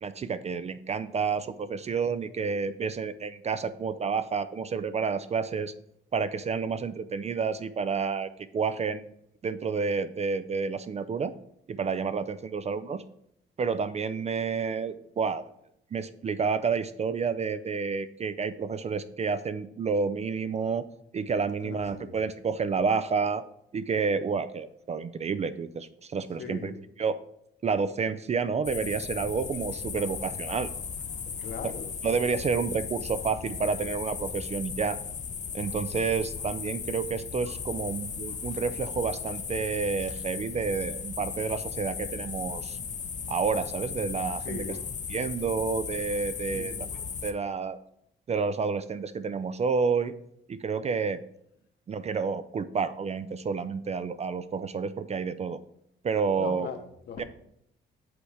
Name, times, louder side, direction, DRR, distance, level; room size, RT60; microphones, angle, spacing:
voice 1, 0.0-5.7 6.1-9.1 9.4-11.3 11.7-13.0 13.6-15.4 15.9-20.8 21.1-23.4 23.7-26.7 27.0-27.2 27.6-30.7 32.0-35.0 35.5-42.8 43.3-44.7 45.1-46.9 47.2-47.8 48.3-50.1 50.5-51.2 51.9-55.6 56.0-56.7 57.2-57.3, right 5 dB, 35° right, 13 dB, 0.4 m, -29 dB
voice 2, 21.6-22.2 26.4-26.8 31.3-31.9 44.4-44.8 46.5-46.9 56.4-56.8 57.1-57.2, left 6 dB, 60° left, 5 dB, 1.1 m, -39 dB
sound 1, 28.6-47.3, left 6 dB, 40° left, 0.6 m, -36 dB
7.9 x 3.3 x 4.9 m, 0.74 s
cardioid pair, 90°, 20 cm